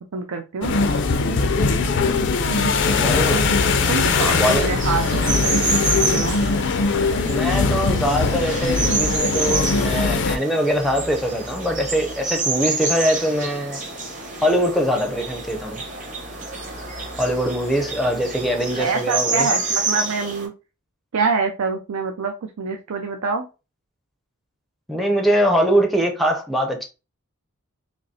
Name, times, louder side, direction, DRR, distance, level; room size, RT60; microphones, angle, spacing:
voice 1, 0.1-0.7 3.9-6.4 18.8-20.5 21.1-23.5, right 4 dB, 75° right, 0.5 m, -26 dB
sound 1, 0.6-10.4, left 4 dB, 55° left, 0.4 m, -20 dB
voice 2, 2.9-3.4 4.2-4.7 7.2-13.8 14.4-15.8 17.2-19.5 24.9-26.8, equal, ahead, 0.5 m, -22 dB
sound 2, 3.6-20.5, right 3 dB, 35° right, 1.0 m, -28 dB
5.2 x 2.0 x 2.7 m
head